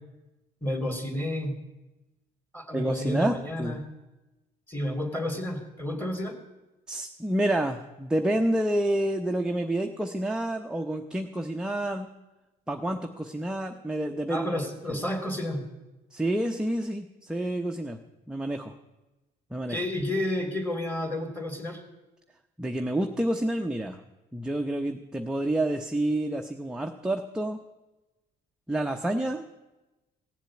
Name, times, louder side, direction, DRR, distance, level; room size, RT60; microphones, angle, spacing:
voice 1, 0.6-1.5 2.5-3.8 4.7-6.3 14.3-15.6 19.7-21.8, left 1 dB, 10° left, 5 dB, 2.8 m, -31 dB
voice 2, 2.7-3.8 6.9-12.1 12.7-15.0 16.1-18.0 18.3-18.7 19.5-19.8 22.6-24.0 24.3-27.6 28.7-29.5, right 1 dB, 5° right, 3 dB, 0.8 m, -29 dB
16.5 x 7.4 x 8.5 m, 1.0 s
cardioid pair, 110°, 17 cm